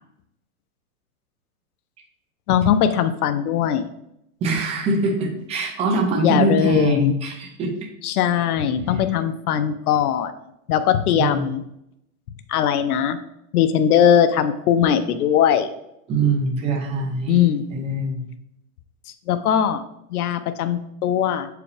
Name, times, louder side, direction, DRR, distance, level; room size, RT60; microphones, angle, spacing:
voice 1, 2.5-3.9 6.2-7.2 8.0-10.3 10.7-11.6 12.5-13.2 13.5-15.7 17.3-17.6 19.3-19.8 20.1-21.5, left 9 dB, 80° left, 10 dB, 0.7 m, -20 dB
voice 2, 4.4-7.7 11.1-11.5 16.1-17.4 17.7-18.2, right 3 dB, 15° right, 1 dB, 0.7 m, -23 dB
6.7 x 4.9 x 3.3 m, 0.81 s
supercardioid pair, 165°, 44 cm